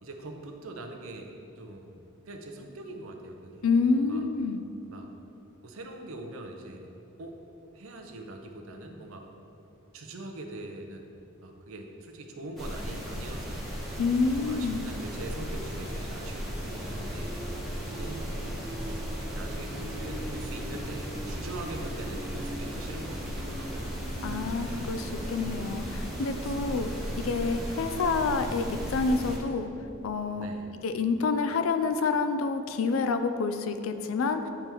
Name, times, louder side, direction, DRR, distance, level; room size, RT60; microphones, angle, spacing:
voice 1, 0.0-3.6 3.9-4.3 4.9-5.1 5.6-6.9 7.2-7.4 7.7-9.3 9.9-11.1 11.4-13.8 14.4-17.4 17.8-24.0 24.6-25.0 26.3-27.3 30.4-30.7, right 2 dB, 70° right, 3 dB, 0.6 m, -43 dB
voice 2, 3.6-4.6 14.0-14.8 24.2-26.9 27.2-29.7 30.0-30.5 30.8-34.5, left 4 dB, 65° left, 8 dB, 0.4 m, -28 dB
sound 1, 12.6-29.4, equal, ahead, 1.0 m, -36 dB
sound 2, 16.7-29.2, right 1 dB, 30° right, 0.6 m, -43 dB
9.8 x 3.4 x 2.9 m, 2.8 s
head